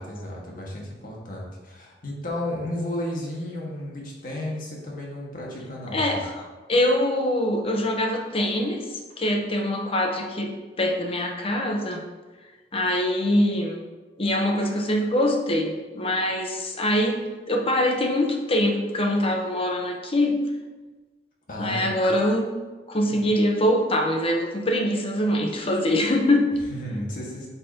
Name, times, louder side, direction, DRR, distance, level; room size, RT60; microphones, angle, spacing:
voice 1, 0.0-6.2 21.5-21.9 23.0-23.2 26.7-27.5, left 1 dB, 50° left, -3 dB, 1.6 m, -33 dB
voice 2, 5.9-12.0 12.7-13.8 14.2-20.4 21.6-26.6, left 1 dB, 30° left, 2 dB, 0.8 m, -24 dB
8.2 x 5.7 x 2.8 m, 1.3 s
head